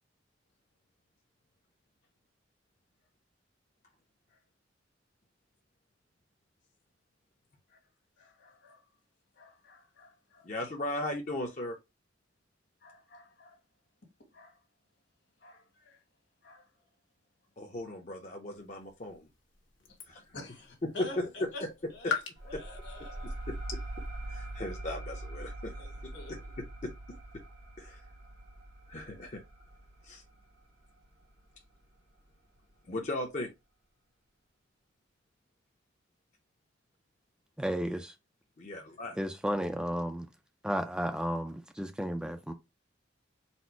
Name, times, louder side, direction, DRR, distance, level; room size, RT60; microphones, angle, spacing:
voice 1, 8.2-8.9 9.3-10.5 12.8-13.6 14.3-14.6 15.4-16.0 16.4-16.7 19.9-20.0 20.3-21.7 21.9-22.2 22.4-23.4 25.8-26.4, left 2 dB, 65° left, 1.7 m, -48 dB
voice 2, 10.4-11.8 17.6-19.3 20.0-20.4 20.8-21.3 21.6-21.7 22.0-22.1 22.5-22.6 23.2-23.8 24.3-25.7 26.0-26.9 27.8-28.0 28.9-29.4 30.0-30.2 32.9-33.5 38.6-39.2, left 1 dB, 40° left, 0.6 m, -37 dB
sound 1, 18.5-24.8, left 6 dB, 90° left, 1.2 m, -43 dB
sound 2, 22.4-31.6, right 1 dB, 80° right, 1.1 m, -43 dB
voice 3, 37.6-38.1 39.2-40.3 40.6-42.5, equal, 5° right, 0.3 m, -33 dB
4.2 x 2.0 x 4.4 m
head